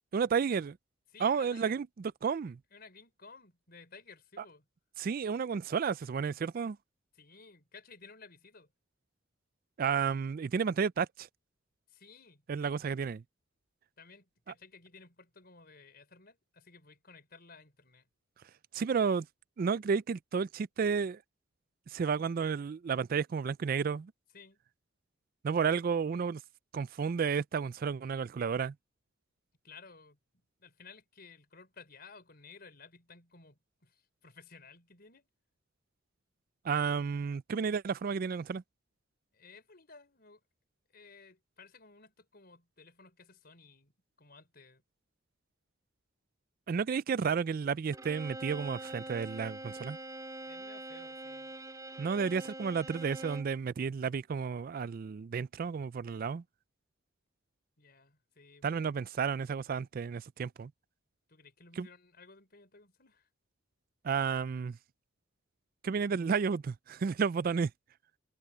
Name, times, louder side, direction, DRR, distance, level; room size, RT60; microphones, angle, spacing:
voice 1, 0.1-0.8 1.2-1.9 2.2-2.6 4.4-4.5 5.0-6.8 9.8-11.3 12.5-13.2 18.7-19.3 19.6-21.2 21.9-24.1 25.4-26.4 26.7-28.7 36.6-38.6 46.7-50.0 52.0-56.4 58.6-60.7 61.8-61.9 64.0-64.8 65.8-67.7, right 6 dB, 45° right, 0.3 m, -32 dB
voice 2, 1.1-1.8 2.7-4.7 7.1-8.7 11.9-12.4 14.0-18.1 24.3-24.6 29.6-30.2 30.6-35.3 39.3-40.4 40.9-44.8 50.4-51.5 57.8-58.8 61.3-63.3, left 4 dB, 50° left, 5.2 m, -56 dB
Bowed string instrument, 47.9-53.6, right 1 dB, 15° right, 4.6 m, -44 dB
head